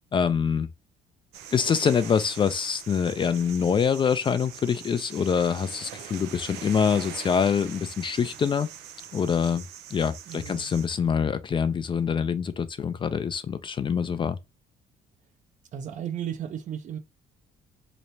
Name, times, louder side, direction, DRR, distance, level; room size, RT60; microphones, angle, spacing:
voice 1, 0.1-0.7 1.5-8.7 9.1-9.6 9.9-14.4, left 6 dB, 30° left, 0.4 m, -25 dB
sound 1, 1.3-10.9, right 9 dB, 85° right, 0.6 m, -43 dB
voice 2, 10.3-10.7 15.7-17.0, right 9 dB, 45° right, 0.6 m, -34 dB
3.2 x 3.0 x 2.6 m
cardioid pair, 110°, 17 cm